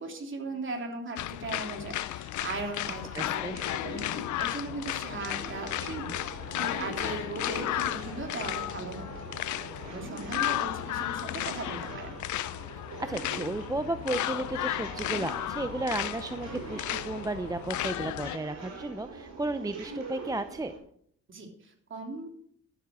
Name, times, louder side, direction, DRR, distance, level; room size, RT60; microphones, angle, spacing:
voice 1, 0.0-9.2 9.9-12.2 21.3-22.3, right 3 dB, 40° right, 2 dB, 3.4 m, -38 dB
sound 1, 1.2-18.4, left 14 dB, 75° left, 0.6 m, -34 dB
sound 2, 2.8-20.8, right 4 dB, 65° right, 5.6 m, -44 dB
voice 2, 3.2-3.6 5.8-6.0 13.0-20.7, right 2 dB, 10° right, 10 dB, 0.6 m, -34 dB
12.5 x 8.2 x 6.2 m, 0.64 s
cardioid pair, 90°, 30 cm